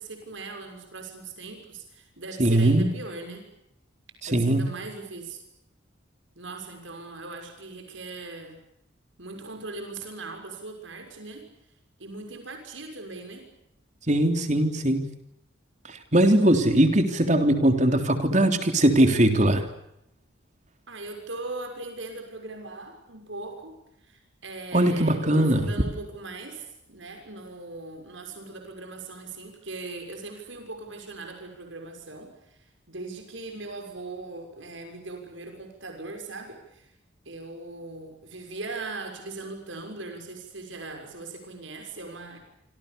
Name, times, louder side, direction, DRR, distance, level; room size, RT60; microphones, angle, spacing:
voice 1, 0.0-3.4 4.3-5.4 6.3-8.6 9.2-11.5 12.0-13.5 20.9-36.9 37.2-42.4, right 3 dB, 75° right, 4 dB, 6.2 m, -39 dB
voice 2, 2.4-2.9 4.2-4.7 14.1-15.1 15.9-19.7 24.7-25.7, right 1 dB, 35° right, 7 dB, 3.5 m, -21 dB
27.5 x 27.0 x 7.0 m, 0.83 s
head